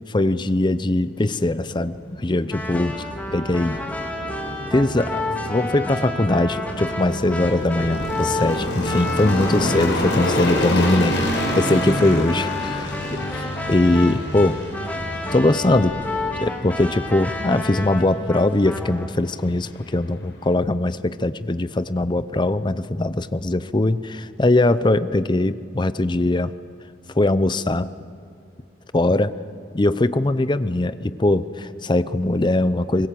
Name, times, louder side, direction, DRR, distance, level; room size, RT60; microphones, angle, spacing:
voice 1, 0.1-3.0 3.3-3.8 4.7-11.3 11.5-13.2 13.7-14.6 15.3-16.0 16.4-26.5 27.1-27.9 28.9-29.3 29.7-33.1, left 2 dB, 25° left, 14 dB, 0.6 m, -21 dB
sound 1, 1.2-20.5, left 1 dB, 75° left, 5.2 m, -29 dB
sound 2, 2.5-19.1, left 1 dB, 10° left, 2.1 m, -30 dB
sound 3, 7.6-16.5, left 1 dB, 55° left, 2.1 m, -40 dB
24.5 x 21.0 x 7.6 m, 2.2 s
head